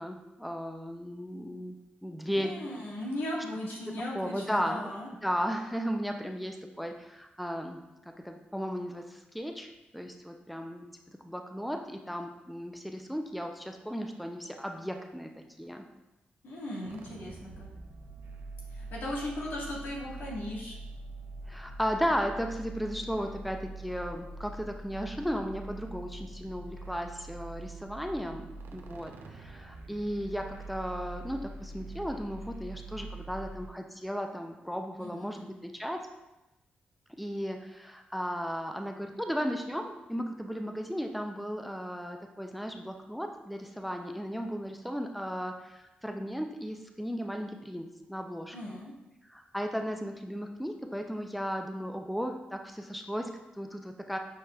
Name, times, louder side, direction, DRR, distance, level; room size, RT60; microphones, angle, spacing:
voice 1, 0.0-1.8 2.0-2.6 4.1-4.8 5.2-7.8 8.2-10.9 11.2-15.3 15.6-15.8 21.5-36.1 37.2-48.8 49.3-54.2, equal, ahead, 4 dB, 0.3 m, -35 dB
voice 2, 2.2-5.1 16.4-17.7 18.7-20.8 35.0-35.4 48.5-48.9, left 1 dB, 75° left, -4 dB, 1.3 m, -38 dB
sound 1, 16.8-33.7, right 2 dB, 85° right, 0.4 m, -44 dB
6.3 x 3.1 x 2.2 m, 0.99 s
cardioid pair, 80°, 3 cm